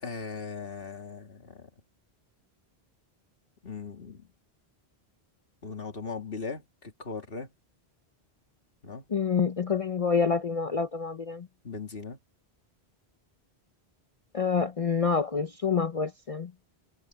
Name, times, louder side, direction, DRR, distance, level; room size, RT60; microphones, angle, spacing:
voice 1, 0.0-1.7 3.6-4.3 5.6-7.5 8.8-9.0 11.6-12.2, left 4 dB, 60° left, 2.5 m, -38 dB
voice 2, 9.1-11.5 14.3-16.5, left 5 dB, 40° left, 0.6 m, -27 dB
omnidirectional pair, 1.1 m